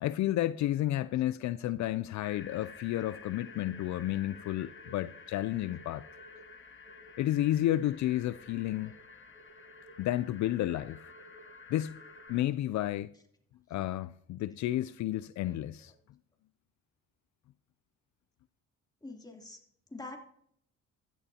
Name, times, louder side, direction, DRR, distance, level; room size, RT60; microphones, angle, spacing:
voice 1, 0.0-6.0 7.2-9.0 10.0-11.1 11.7-12.0 12.3-13.1 13.7-15.9, left 14 dB, 65° left, 0.4 m, -31 dB
sound 1, 2.2-12.4, left 5 dB, 40° left, 1.5 m, -52 dB
sound 2, 2.3-12.3, right 1 dB, 5° right, 5.9 m, -58 dB
voice 2, 15.4-15.9 19.0-19.6 19.9-20.2, left 2 dB, 15° left, 3.0 m, -46 dB
15.5 x 11.5 x 2.8 m
cardioid pair, 90°, 30 cm